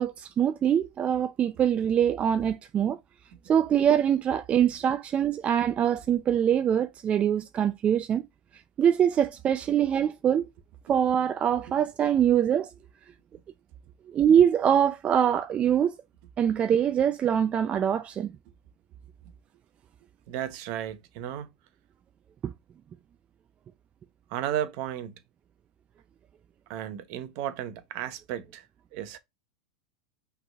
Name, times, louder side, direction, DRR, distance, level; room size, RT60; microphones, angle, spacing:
voice 1, 0.0-3.0 3.5-8.2 8.8-10.5 10.9-12.7 14.1-15.9 16.4-18.3 22.4-22.5, right 9 dB, 30° right, 0.4 m, -24 dB
voice 2, 20.3-21.5 24.3-25.2 26.7-28.7 28.9-29.2, right 11 dB, 55° right, 0.8 m, -34 dB
5.9 x 3.3 x 2.3 m
hypercardioid pair, 100°, 4 cm